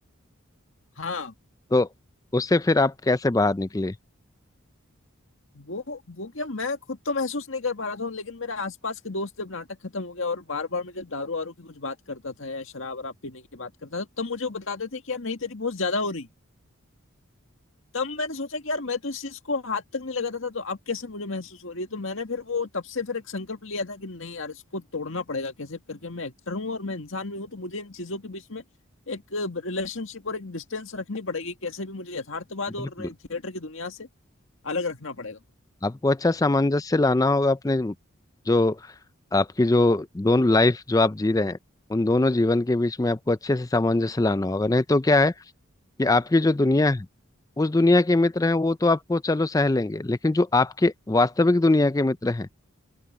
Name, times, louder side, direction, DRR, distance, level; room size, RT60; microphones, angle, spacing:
voice 1, 1.0-1.3 5.5-16.3 17.9-28.6 29.1-34.1 34.6-35.4, left 3 dB, 70° left, 2.0 m, -32 dB
voice 2, 2.3-3.9 32.8-33.1 35.8-37.9 38.5-38.8 39.3-41.6 41.9-45.3 46.0-47.1 47.6-52.5, left 2 dB, 15° left, 0.4 m, -22 dB
open air
head